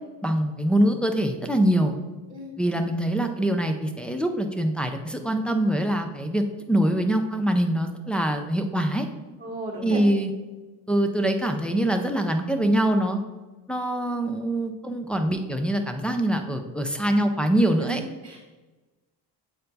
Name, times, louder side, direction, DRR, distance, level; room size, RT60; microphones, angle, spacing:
voice 1, 0.2-1.9 2.6-6.4 6.7-9.1 9.8-10.3 10.9-13.2 13.7-18.0, right 1 dB, 5° left, 3 dB, 0.3 m, -24 dB
voice 2, 9.4-10.0 17.8-17.9 18.2-18.4, right 1 dB, 20° right, -6 dB, 1.5 m, -34 dB
7.7 x 4.3 x 4.0 m, 1.2 s
cardioid pair, 140°, 42 cm